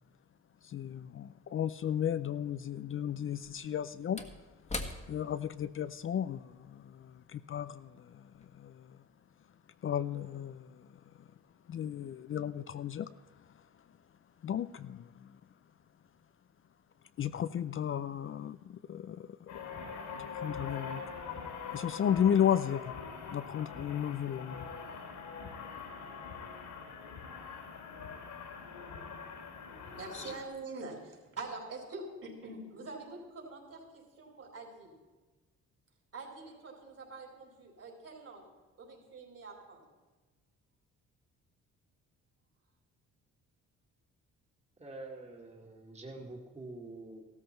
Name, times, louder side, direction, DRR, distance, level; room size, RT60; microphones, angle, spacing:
voice 1, 0.6-4.2 5.1-9.0 9.8-11.3 11.7-13.1 13.5-13.6 14.4-15.4 17.2-19.5 20.1-21.0 21.7-22.9 23.3-24.7 30.1-30.3, left 9 dB, 45° left, 13 dB, 0.5 m, -34 dB
Slam / Wood, 1.7-1.8 3.3-8.0 8.3-8.4, left 2 dB, 20° left, 1.5 m, -45 dB
sound 1, 19.5-30.4, left 5 dB, 80° left, 3.6 m, -43 dB
voice 2, 29.8-34.9 36.1-38.4 38.8-39.8, right 3 dB, 50° right, 0 dB, 4.8 m, -45 dB
voice 3, 44.8-47.2, right 2 dB, 20° right, 0 dB, 2.2 m, -46 dB
15.0 x 13.5 x 4.5 m, 1.3 s
cardioid pair, 90°, 30 cm